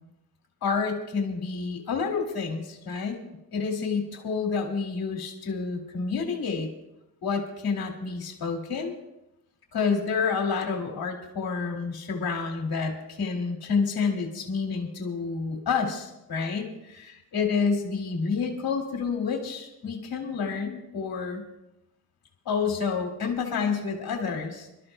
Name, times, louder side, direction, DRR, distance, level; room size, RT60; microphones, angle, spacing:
voice 1, 0.6-3.2 3.5-6.7 7.2-9.0 9.7-21.4 22.5-24.7, left 5 dB, 70° left, 2 dB, 2.3 m, -29 dB
27.5 x 13.0 x 2.2 m, 0.88 s
wide cardioid pair, 145°, 38 cm